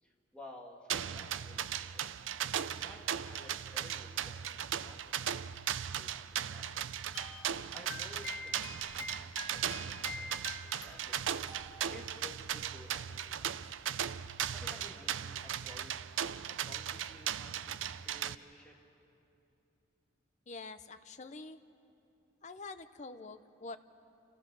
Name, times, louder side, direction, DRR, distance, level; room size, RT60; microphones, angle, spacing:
voice 1, 0.0-2.1 2.5-6.9 7.7-11.4 11.6-13.8 14.5-16.1 16.5-18.8, left 1 dB, 5° left, -2 dB, 2.1 m, -54 dB
sound 1, 0.9-18.3, right 9 dB, 75° right, 0.5 m, -37 dB
sound 2, 7.1-12.1 12.4-12.6 13.6-13.7, left 3 dB, 70° left, 1.3 m, -46 dB
voice 2, 20.5-21.6 22.4-23.8, left 3 dB, 40° left, 10 dB, 0.7 m, -46 dB
29.0 x 14.5 x 6.3 m, 2.7 s
head